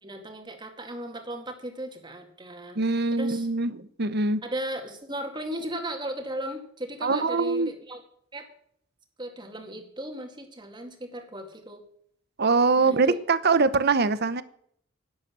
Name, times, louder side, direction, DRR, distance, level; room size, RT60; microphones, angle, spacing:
voice 1, 0.0-2.8 3.1-3.5 4.4-8.0 8.3-8.5 9.2-11.8 12.8-13.2, right 1 dB, 20° right, 4 dB, 2.1 m, -36 dB
voice 2, 2.8-4.4 7.0-7.7 12.4-14.4, right 4 dB, 50° right, 13 dB, 0.9 m, -23 dB
11.5 x 10.5 x 6.2 m, 0.65 s
head